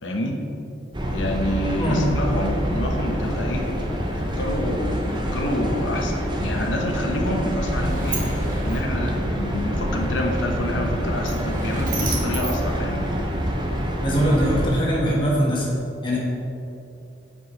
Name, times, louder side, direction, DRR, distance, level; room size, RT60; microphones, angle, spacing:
voice 1, 0.0-0.4 1.1-3.7 4.0-13.1, left 1 dB, 85° left, 1 dB, 1.0 m, -28 dB
sound 1, 0.9-14.7, equal, 25° right, 0.7 m, -26 dB
Sliding door, 7.7-13.6, right 3 dB, 45° right, 1.2 m, -35 dB
voice 2, 14.0-15.7 16.0-16.2, equal, 25° left, -5 dB, 1.5 m, -21 dB
9.2 x 5.5 x 3.2 m, 2.7 s
head